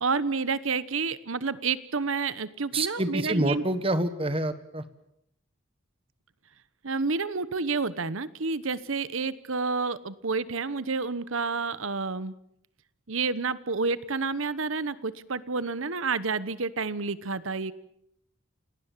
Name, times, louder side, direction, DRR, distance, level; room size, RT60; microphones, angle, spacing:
voice 1, 0.0-3.6 6.8-12.3 13.1-17.7, right 4 dB, 75° right, 16 dB, 1.1 m, -29 dB
voice 2, 2.7-4.8, right 1 dB, 25° right, 12 dB, 1.4 m, -27 dB
28.5 x 19.0 x 7.4 m, 0.75 s
head